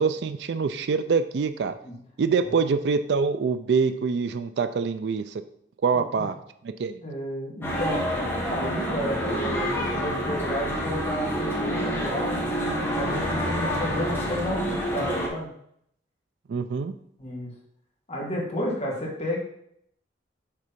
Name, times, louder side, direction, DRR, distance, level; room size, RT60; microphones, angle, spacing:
voice 1, 0.0-1.7 2.2-5.4 5.8-6.3 6.8-7.0 16.5-16.9, right 5 dB, 60° right, 10 dB, 0.3 m, -25 dB
voice 2, 7.0-8.0 8.5-15.5 17.2-17.5 18.1-19.4, equal, 35° left, -3 dB, 1.9 m, -32 dB
sound 1, 7.6-15.3, equal, 10° left, 1.4 m, -28 dB
6.6 x 3.3 x 5.2 m, 0.70 s
head